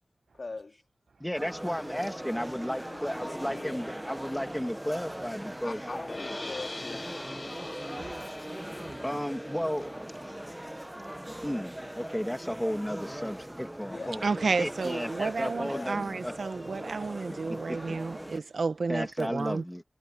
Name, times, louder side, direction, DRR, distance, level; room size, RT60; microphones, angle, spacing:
voice 1, 0.3-0.8 2.9-3.9 5.4-7.3 13.9-14.2 15.0-16.0, left 3 dB, 65° left, 3.0 m, -42 dB
voice 2, 1.2-5.8 9.0-9.9 11.4-14.2 14.6-16.3 17.7-17.8 18.9-19.8, equal, 5° left, 2.3 m, -33 dB
sound 1, 1.3-18.4, right 1 dB, 10° right, 0.9 m, -40 dB
sound 2, 6.1-12.2, left 2 dB, 40° left, 1.1 m, -44 dB
voice 3, 14.2-19.6, right 4 dB, 85° right, 0.9 m, -31 dB
wide cardioid pair, 75°, 0 cm